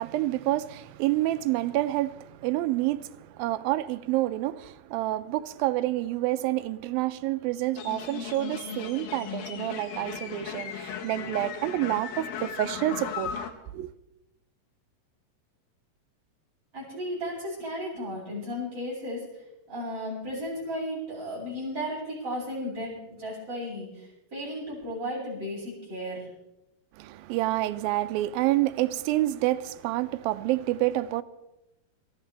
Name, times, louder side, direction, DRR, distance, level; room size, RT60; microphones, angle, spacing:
voice 1, 0.0-13.3 13.7-13.9 27.0-31.2, right 16 dB, 90° right, 2.4 m, -28 dB
sound 1, 7.8-13.5, left 8 dB, 85° left, 3.0 m, -36 dB
voice 2, 16.7-26.3, equal, 25° right, 7.7 m, -35 dB
26.0 x 14.0 x 3.4 m
omnidirectional pair, 4.0 m